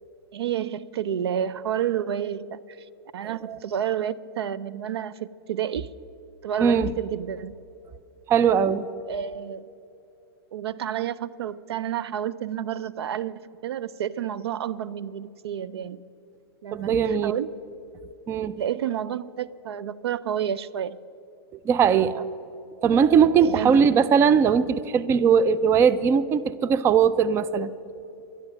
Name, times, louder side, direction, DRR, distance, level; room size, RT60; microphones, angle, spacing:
voice 1, 0.3-2.8 3.1-5.9 6.4-7.5 9.1-9.7 10.5-16.0 16.6-17.5 18.6-21.0 23.4-23.8, right 9 dB, 80° right, 18 dB, 0.4 m, -30 dB
voice 2, 3.2-3.6 6.6-6.9 8.3-8.8 16.7-17.3 18.3-18.6 21.7-22.2 22.8-27.7, right 7 dB, 20° right, 17 dB, 0.3 m, -20 dB
11.5 x 11.5 x 6.2 m, 2.8 s
hypercardioid pair, 130°, 13 cm